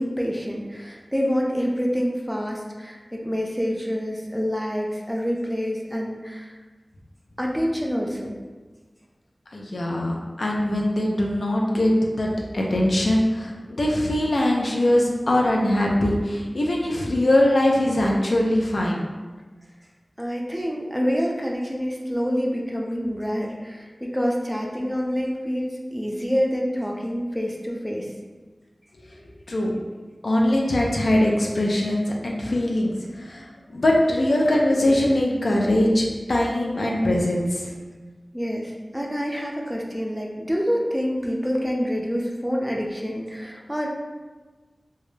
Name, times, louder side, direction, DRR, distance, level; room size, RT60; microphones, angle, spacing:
voice 1, 0.0-6.5 7.4-8.3 20.2-28.1 38.3-43.9, equal, ahead, -1 dB, 0.4 m, -27 dB
voice 2, 9.5-19.1 29.5-29.8 30.2-33.4 33.7-37.7, left 1 dB, 75° left, -2 dB, 0.4 m, -22 dB
2.2 x 2.0 x 3.1 m, 1.3 s
wide cardioid pair, 45°, 0 cm